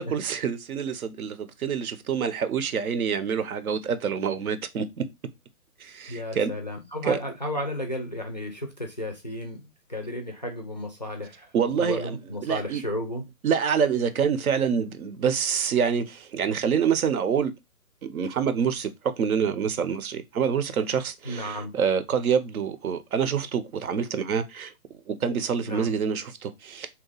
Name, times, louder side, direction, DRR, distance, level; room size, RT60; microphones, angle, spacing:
voice 1, 0.0-5.0 5.8-6.5 7.0-7.2 11.5-12.2 12.4-12.8 13.4-17.5 18.0-24.7 25.1-26.9, right 7 dB, 70° right, 0.7 m, -26 dB
voice 2, 6.1-9.6 9.9-13.2 21.2-21.7 25.7-25.9, left 1 dB, 30° left, 0.4 m, -33 dB
2.8 x 2.4 x 3.8 m
hypercardioid pair, 145°, 45 cm